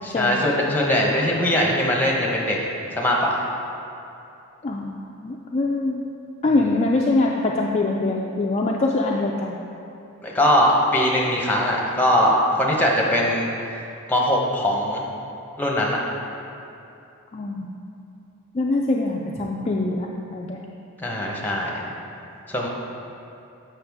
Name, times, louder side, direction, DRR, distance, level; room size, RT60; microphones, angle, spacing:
voice 1, 0.0-2.6 3.0-3.4 10.2-13.5 14.1-15.1 15.6-16.0 21.0-21.8 22.5-22.7, left 1 dB, 10° left, -3 dB, 0.8 m, -21 dB
voice 2, 4.6-5.0 5.2-6.0 6.4-9.6 17.3-17.7 18.5-20.1 20.3-20.6, left 2 dB, 30° left, -2 dB, 0.3 m, -23 dB
7.8 x 5.8 x 3.5 m, 2.7 s
head